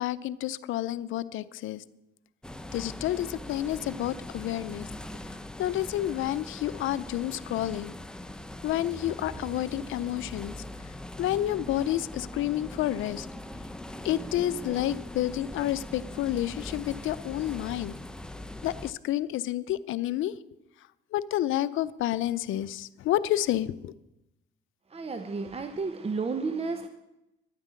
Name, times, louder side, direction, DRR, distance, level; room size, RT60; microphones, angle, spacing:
voice 1, 0.0-1.8 2.7-4.9 5.6-7.9 8.6-10.5 11.2-13.3 14.0-17.9 18.6-20.3 21.1-23.9, left 13 dB, 85° left, 15 dB, 0.6 m, -29 dB
sound 1, 2.4-18.9, left 1 dB, 5° left, 0.7 m, -41 dB
voice 2, 24.9-26.9, right 4 dB, 30° right, 9 dB, 0.9 m, -32 dB
11.5 x 9.6 x 8.2 m, 0.92 s
cardioid pair, 90°, 20 cm